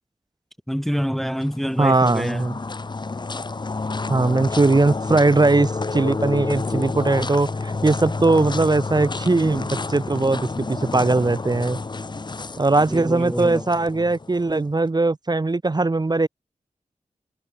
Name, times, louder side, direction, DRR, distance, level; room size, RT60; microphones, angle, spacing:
voice 1, 0.7-2.5 12.9-13.6, equal, ahead, 0.8 m, -26 dB
sound 1, 1.3-14.6, left 3 dB, 35° left, 0.7 m, -30 dB
voice 2, 1.8-2.5 4.1-11.8 12.6-16.3, right 3 dB, 30° right, 0.9 m, -20 dB
cardioid pair, 60°, 14 cm